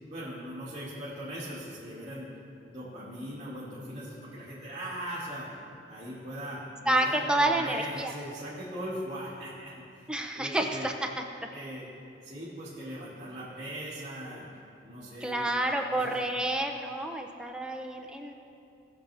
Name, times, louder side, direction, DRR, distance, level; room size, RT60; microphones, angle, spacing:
voice 1, 0.1-2.3 2.6-5.5 5.9-10.9 11.5-11.9 12.2-14.4 14.8-16.2, equal, 35° right, -12 dB, 2.2 m, -40 dB
voice 2, 6.9-8.1 10.1-11.2 15.2-18.3, right 1 dB, 5° right, 3 dB, 0.7 m, -29 dB
19.0 x 6.7 x 3.4 m, 2.6 s
head